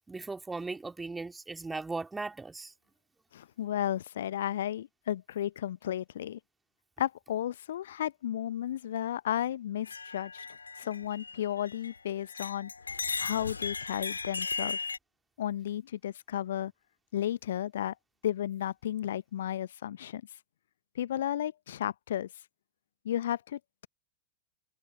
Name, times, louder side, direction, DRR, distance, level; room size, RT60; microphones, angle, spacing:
voice 1, 0.1-2.7, right 3 dB, 10° right, 2.9 m, -37 dB
voice 2, 3.3-6.4 7.0-10.5 10.8-12.7 13.2-14.8 15.4-16.7 17.1-17.9 18.2-20.2 20.9-22.3 23.0-23.9, left 11 dB, 60° left, 0.9 m, -33 dB
sound 1, 9.8-12.0 12.3-15.0, left 4 dB, 75° left, 2.2 m, -37 dB
figure-of-eight pair, 90°, 0 cm